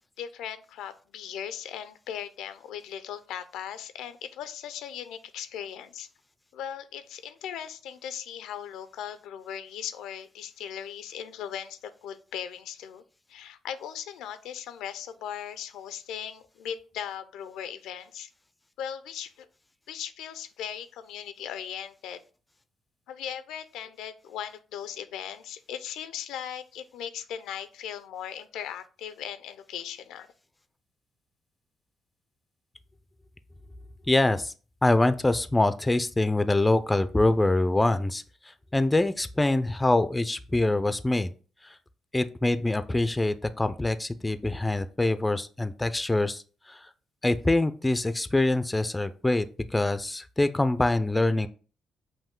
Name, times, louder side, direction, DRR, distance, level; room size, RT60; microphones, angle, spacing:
voice 1, 0.2-6.1 6.5-13.0 13.3-18.3 18.8-19.5 19.9-22.2 23.1-30.3, left 9 dB, 85° left, 12 dB, 0.4 m, -38 dB
voice 2, 34.1-34.5 34.8-38.2 38.7-41.3 41.6-41.8 42.1-46.9 47.2-49.4 49.7-51.5, left 2 dB, 15° left, 12 dB, 0.4 m, -24 dB
5.5 x 2.6 x 3.6 m, 0.38 s
cardioid pair, 90°, 0 cm